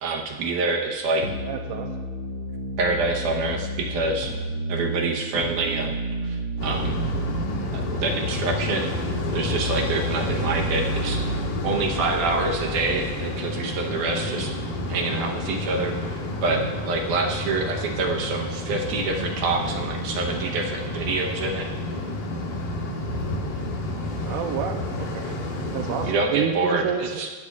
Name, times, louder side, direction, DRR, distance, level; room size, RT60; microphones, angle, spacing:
voice 1, 0.0-1.2 2.8-4.3 4.7-6.0 6.2-7.0 7.7-8.9 9.3-11.4 11.6-14.5 14.9-16.0 16.4-21.7 26.1-27.3, right 3 dB, 70° right, 1 dB, 2.1 m, -26 dB
sound 1, 1.2-13.2, right 1 dB, 50° right, 1.9 m, -31 dB
voice 2, 1.4-2.0 24.3-25.4 25.7-27.1, right 8 dB, 85° right, 5 dB, 1.8 m, -29 dB
sound 2, 6.6-26.1, left 1 dB, 65° left, 3.0 m, -30 dB
16.0 x 11.5 x 2.4 m, 1.4 s
omnidirectional pair, 4.3 m